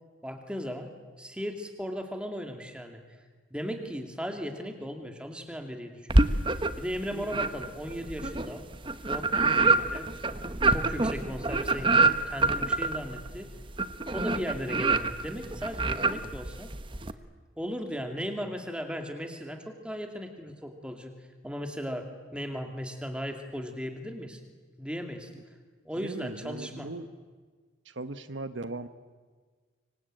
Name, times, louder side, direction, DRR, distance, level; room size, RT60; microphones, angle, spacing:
voice 1, 0.2-0.9 1.2-3.0 3.5-6.2 6.6-8.7 9.1-10.1 10.7-13.5 14.1-16.7 17.6-21.1 21.4-24.4 24.8-25.3 25.8-26.9, equal, 5° right, 5 dB, 2.7 m, -37 dB
sound 1, 6.1-6.9 7.3-17.1, right 3 dB, 25° right, 1.1 m, -26 dB
voice 2, 7.1-7.5 25.3-25.4 26.0-27.1 27.8-28.9, right 2 dB, 75° right, 12 dB, 1.1 m, -39 dB
25.5 x 24.5 x 9.1 m, 1.5 s
head